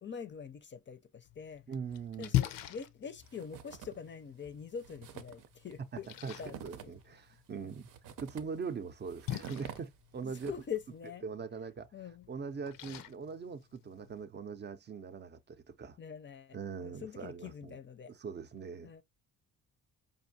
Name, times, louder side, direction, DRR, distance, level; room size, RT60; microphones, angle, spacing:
voice 1, 0.0-1.6 2.2-6.1 6.4-6.6 6.8-6.9 7.6-7.7 10.2-11.2 11.9-12.3 16.0-16.6 16.8-18.1 18.8-19.0, left 7 dB, 35° left, 0.5 m, -44 dB
Splash splatter, 1.2-14.2, left 13 dB, 90° left, 0.6 m, -42 dB
voice 2, 1.7-2.3 6.2-7.9 8.2-10.5 11.2-11.9 12.3-16.0 16.5-17.8 18.1-19.0, right 5 dB, 35° right, 0.5 m, -42 dB
sound 1, 3.2-4.1 4.4-4.5 4.8-10.8, right 9 dB, 75° right, 0.7 m, -49 dB
5.1 x 2.6 x 2.7 m
cardioid pair, 115°, 33 cm